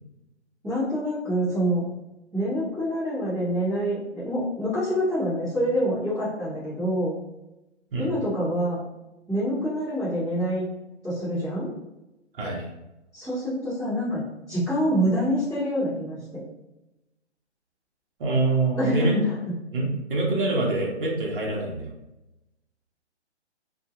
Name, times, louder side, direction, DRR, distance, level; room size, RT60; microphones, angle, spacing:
voice 1, 0.6-1.8 2.3-7.2 8.0-8.8 9.3-10.6 11.0-11.7 13.1-14.2 14.5-16.4 18.8-19.3, equal, 5° right, -22 dB, 0.5 m, -26 dB
voice 2, 12.3-12.7 18.2-19.1 19.7-21.9, right 3 dB, 50° right, -2 dB, 0.8 m, -25 dB
2.3 x 2.2 x 2.8 m, 0.96 s
hypercardioid pair, 155°, 35 cm